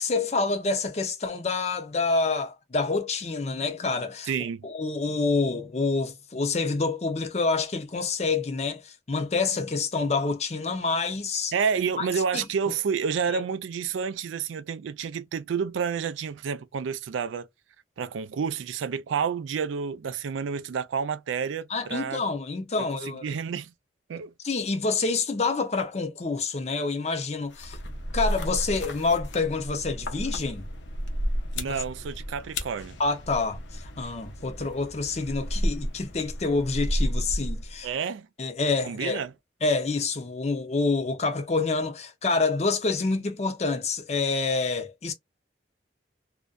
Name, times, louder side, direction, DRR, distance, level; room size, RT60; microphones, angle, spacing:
voice 1, 0.0-4.3 4.6-11.5 12.0-12.1 12.3-12.4 13.3-13.4 21.7-23.3 24.4-27.8 28.1-30.7 31.7-31.8 33.0-37.9 38.4-39.2 39.6-45.1, left 3 dB, 35° left, 0.5 m, -27 dB
voice 2, 4.3-4.7 11.5-17.5 18.0-22.2 22.8-23.7 24.1-24.3 31.6-33.0 37.8-38.3 38.8-39.3, right 6 dB, 85° right, 0.4 m, -29 dB
sound 1, 27.5-37.9, equal, 75° left, 0.7 m, -32 dB
2.5 x 2.2 x 2.2 m
head